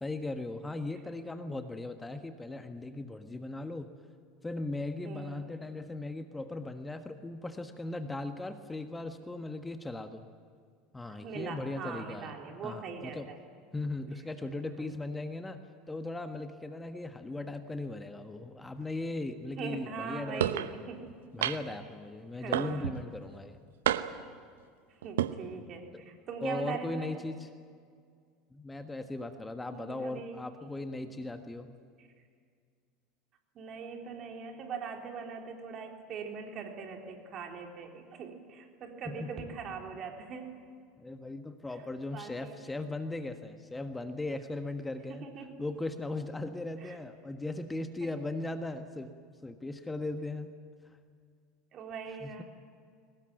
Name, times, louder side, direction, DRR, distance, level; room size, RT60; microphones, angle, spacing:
voice 1, 0.0-3.9 4.4-10.2 10.9-12.3 12.6-13.3 13.7-15.6 15.9-20.5 21.3-23.6 25.9-26.0 26.4-27.5 28.5-31.8 39.0-39.6 41.0-45.3 45.6-49.1 49.4-50.5 52.2-52.4, left 2 dB, 15° left, 7 dB, 1.4 m, -38 dB
voice 2, 5.0-5.4 11.2-13.4 14.8-14.9 17.4-17.5 19.6-21.1 22.4-22.9 25.0-27.1 29.6-30.4 32.0-32.1 33.6-40.6 42.1-42.6 45.1-45.5 46.8-47.0 48.0-48.1 51.7-52.4, right 5 dB, 45° right, 2 dB, 3.9 m, -41 dB
sound 1, 20.4-20.7 21.4-21.8 22.5-23.0 23.8-24.3 25.0-25.3, right 12 dB, 75° right, 0.9 m, -29 dB
23.0 x 19.5 x 9.3 m, 2.1 s
hypercardioid pair, 75°, 0 cm